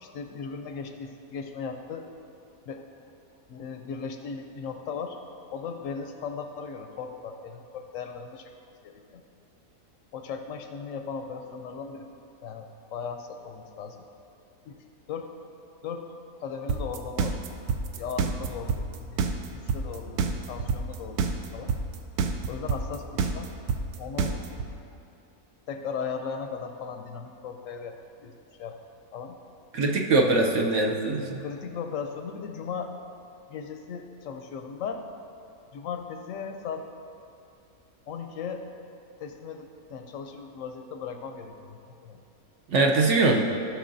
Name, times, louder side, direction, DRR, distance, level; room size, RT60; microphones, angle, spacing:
voice 1, 0.0-2.1 2.7-2.8 3.5-5.2 5.5-8.5 8.8-9.2 10.1-12.1 12.4-14.0 14.6-14.8 15.1-15.3 15.8-17.4 18.0-21.7 22.5-23.5 24.0-24.4 25.7-28.8 29.1-29.4 31.4-32.9 33.5-35.1 35.7-36.9 38.1-38.7 39.2-42.2, left 6 dB, 70° left, 5 dB, 0.9 m, -37 dB
sound 1, 16.7-24.7, right 5 dB, 85° right, 1.1 m, -26 dB
voice 2, 29.7-31.4 42.7-43.5, right 3 dB, 65° right, 1 dB, 0.8 m, -22 dB
14.5 x 6.6 x 2.6 m, 2.6 s
omnidirectional pair, 1.6 m